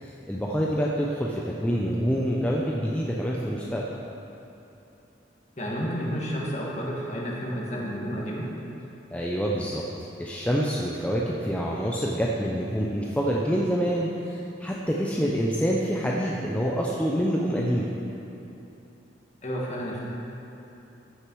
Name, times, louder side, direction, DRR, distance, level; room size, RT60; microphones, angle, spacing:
voice 1, 0.0-3.9 9.1-9.8 10.2-17.9, equal, 5° left, -4 dB, 0.6 m, -26 dB
voice 2, 5.6-8.5 19.4-20.0, equal, 40° left, -3 dB, 1.7 m, -31 dB
14.0 x 6.6 x 4.7 m, 2.9 s
head